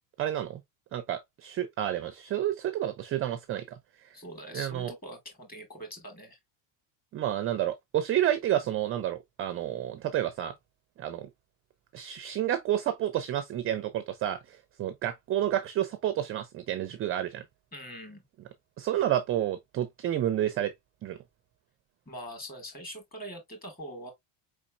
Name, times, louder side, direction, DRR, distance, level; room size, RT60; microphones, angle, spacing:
voice 1, 0.2-0.6 0.9-3.8 4.5-4.9 7.1-10.5 11.0-11.3 11.9-17.4 18.8-20.7 21.0-21.2, right 11 dB, 30° right, 0.4 m, -30 dB
voice 2, 4.1-6.4 17.7-18.3 22.1-24.1, equal, 20° left, 2.4 m, -43 dB
4.7 x 4.2 x 2.4 m
cardioid pair, 155°, 48 cm